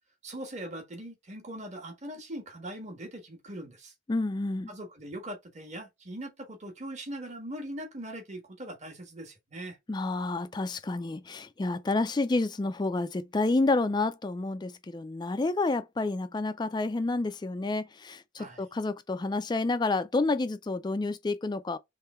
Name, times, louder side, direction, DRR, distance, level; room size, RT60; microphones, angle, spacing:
voice 1, 0.2-3.9 4.7-9.8 18.4-18.7, right 1 dB, 35° right, 1.4 m, -41 dB
voice 2, 4.1-4.7 9.9-21.8, left 3 dB, 20° left, 0.3 m, -29 dB
3.7 x 3.1 x 4.2 m
head